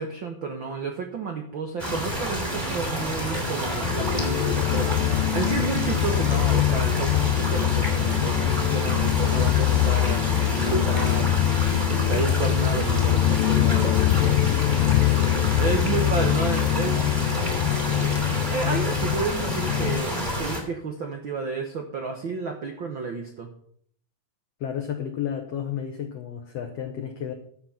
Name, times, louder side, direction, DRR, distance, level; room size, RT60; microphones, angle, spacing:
voice 1, 0.0-4.9 5.3-11.3 11.9-14.6 15.6-17.5 18.3-23.5, right 4 dB, 75° right, 4 dB, 1.1 m, -31 dB
sound 1, 1.8-20.6, equal, 15° right, 2.2 m, -29 dB
sound 2, 3.8-20.0, left 15 dB, 80° left, 2.3 m, -23 dB
voice 2, 24.6-27.3, left 9 dB, 65° left, 4 dB, 1.7 m, -32 dB
12.5 x 7.4 x 5.9 m, 0.62 s
omnidirectional pair, 4.0 m